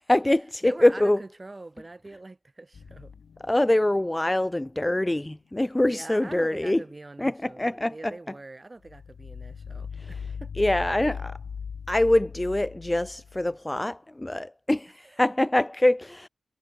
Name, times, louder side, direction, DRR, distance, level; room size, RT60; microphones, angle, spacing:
voice 1, 0.1-1.2 3.4-6.8 7.2-8.1 10.0-10.1 10.6-11.4 11.9-16.3, left 1 dB, 10° left, 0.6 m, -24 dB
voice 2, 0.6-3.1 5.9-10.5 15.4-15.5, right 2 dB, 20° right, 2.1 m, -43 dB
sound 1, 2.7-4.0 4.5-4.6 8.8-13.5, left 6 dB, 65° left, 0.7 m, -39 dB
wide cardioid pair, 120°, 0 cm